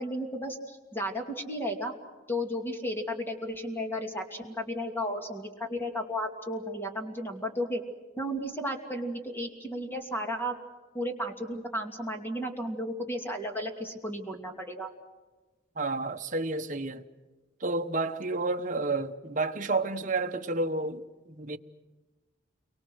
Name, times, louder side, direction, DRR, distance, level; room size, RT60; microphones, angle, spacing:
voice 1, 0.0-1.9 2.3-7.8 8.2-10.5 10.9-14.9, equal, 10° left, 2.7 m, -34 dB
voice 2, 15.8-17.0 17.6-21.6, right 3 dB, 40° right, 1.1 m, -30 dB
30.0 x 24.0 x 6.3 m
head